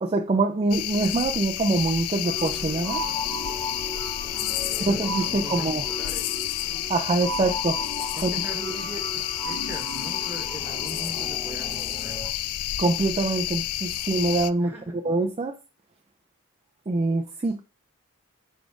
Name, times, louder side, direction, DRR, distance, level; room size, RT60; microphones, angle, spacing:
voice 1, 0.0-3.0 4.9-5.8 6.9-7.8 8.2-8.3 12.8-14.7 15.0-15.5 16.9-17.6, right 3 dB, 25° right, 0.4 m, -24 dB
sound 1, 0.7-14.5, left 14 dB, 80° left, 0.3 m, -30 dB
sound 2, 2.2-12.3, equal, 20° left, 1.0 m, -36 dB
voice 2, 4.3-5.0 5.3-6.3 7.4-7.5 8.2-12.2 14.6-15.0, right 1 dB, 10° right, 1.3 m, -41 dB
5.0 x 4.1 x 4.6 m
head